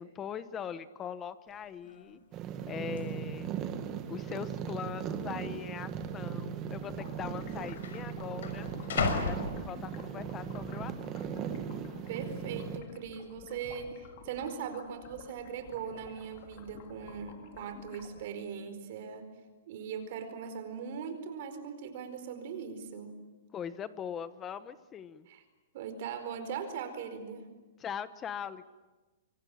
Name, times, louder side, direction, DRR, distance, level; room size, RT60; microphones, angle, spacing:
voice 1, 0.0-2.2 2.7-3.5 4.1-8.7 9.1-11.5 23.5-25.3 27.8-28.6, left 8 dB, 15° left, 14 dB, 1.1 m, -41 dB
sound 1, 1.5-1.6 1.8-2.3 3.0-3.1 3.8-4.3 4.6-4.7 5.6-5.7 6.7-6.8 7.1-10.3 10.8-11.2, left 5 dB, 70° left, 5.8 m, -36 dB
sound 2, 2.3-12.8, right 8 dB, 25° right, 1.8 m, -38 dB
sound 3, 6.7-18.2, left 7 dB, 40° left, 2.9 m, -52 dB
voice 2, 12.1-19.3 19.7-23.1 25.3-25.4 25.7-27.5, right 7 dB, 45° right, 8 dB, 4.6 m, -40 dB
26.0 x 25.0 x 8.8 m, 1.2 s
hypercardioid pair, 165°, 0 cm